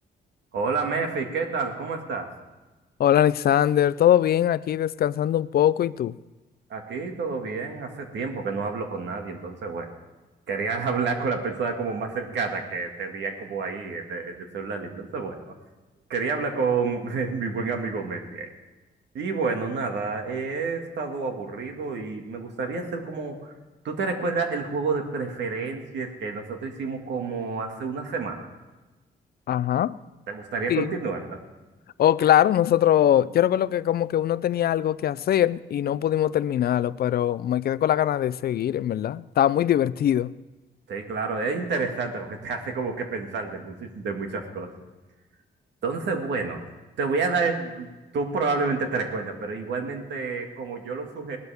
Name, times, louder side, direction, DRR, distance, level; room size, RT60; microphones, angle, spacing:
voice 1, 0.5-2.3 6.7-9.9 10.5-15.5 16.1-18.5 19.1-23.5 23.8-28.5 30.3-31.4 40.9-44.7 45.8-46.6 47.0-51.4, right 4 dB, 80° right, 4 dB, 2.0 m, -29 dB
voice 2, 3.0-6.2 29.5-30.0 30.7-30.9 32.0-40.3, left 11 dB, 60° left, 18 dB, 0.4 m, -22 dB
19.0 x 12.5 x 3.5 m, 1.2 s
cardioid pair, 125°, 18 cm